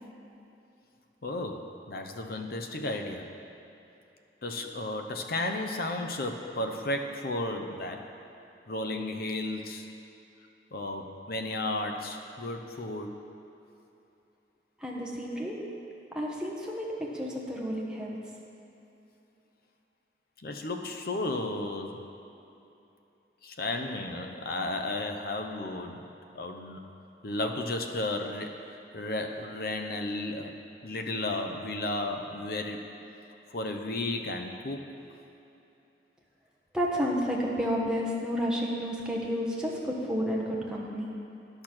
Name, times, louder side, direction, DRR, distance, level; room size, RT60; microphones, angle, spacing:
voice 1, 1.2-3.3 4.4-8.0 8.7-9.9 10.7-13.2 20.4-22.0 23.4-26.1 26.3-26.8 27.2-32.9 33.5-35.0, left 2 dB, 55° left, 4 dB, 0.8 m, -33 dB
voice 2, 14.8-15.6 16.1-18.2 36.7-41.1, equal, 5° right, -3 dB, 1.2 m, -31 dB
10.5 x 6.7 x 6.0 m, 2.8 s
head